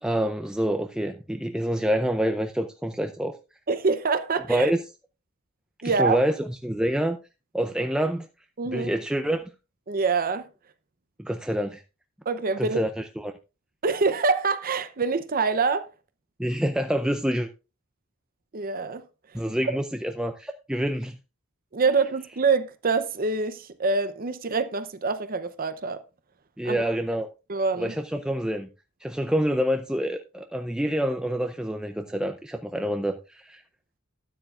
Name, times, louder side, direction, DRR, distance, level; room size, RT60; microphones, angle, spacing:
voice 1, 0.0-3.3 4.5-4.8 5.8-7.2 7.5-8.3 8.7-9.5 11.2-11.8 12.6-13.3 16.4-17.5 19.3-21.2 26.6-27.3 27.8-28.7 29.0-33.6, equal, 5° right, 0.4 m, -27 dB
voice 2, 3.7-4.7 5.8-6.2 8.6-8.9 9.9-10.5 12.3-12.8 13.8-15.9 18.5-19.0 21.7-26.0 26.6-26.8 27.5-27.9, right 4 dB, 40° right, 0.6 m, -25 dB
13.0 x 9.3 x 2.4 m
head